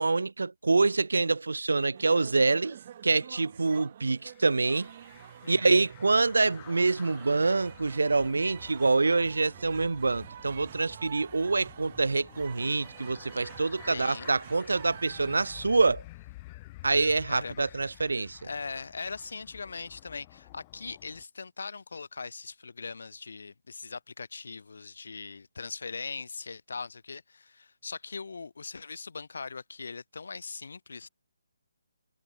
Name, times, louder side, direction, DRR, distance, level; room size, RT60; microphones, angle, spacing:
voice 1, 0.0-2.8 3.0-4.9 5.5-16.0 16.8-18.4, right 3 dB, 80° right, 0.7 m, -26 dB
sound 1, 1.9-15.7, right 10 dB, 40° right, 1.8 m, -48 dB
sound 2, 4.2-21.2, left 20 dB, 25° left, 4.6 m, -52 dB
voice 2, 5.4-5.8 13.9-14.3 17.3-17.8 18.1-31.1, left 4 dB, 70° left, 2.7 m, -40 dB
figure-of-eight pair, 150°, 0 cm